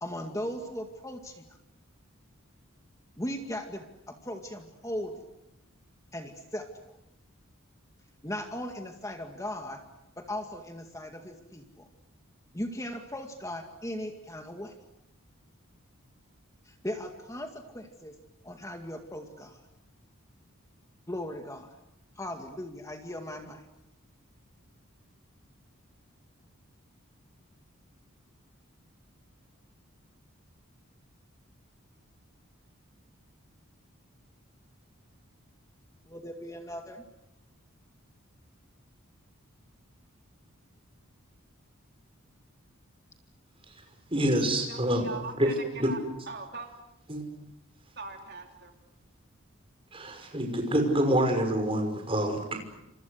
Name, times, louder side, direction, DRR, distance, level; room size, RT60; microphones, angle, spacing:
voice 1, 0.0-1.5 3.2-5.2 6.1-7.0 8.2-9.8 10.3-11.9 12.5-14.7 16.7-18.2 18.4-19.6 21.1-21.7 22.2-23.6 36.1-37.1, left 1 dB, 15° left, 4 dB, 2.1 m, -38 dB
voice 2, 44.1-45.5 45.8-45.9 47.1-47.2 49.9-52.6, right 1 dB, 25° right, 4 dB, 5.7 m, -27 dB
voice 3, 44.7-46.0 46.3-46.7 48.0-48.7, right 4 dB, 50° right, 3 dB, 3.0 m, -40 dB
29.5 x 27.0 x 6.6 m, 0.87 s
head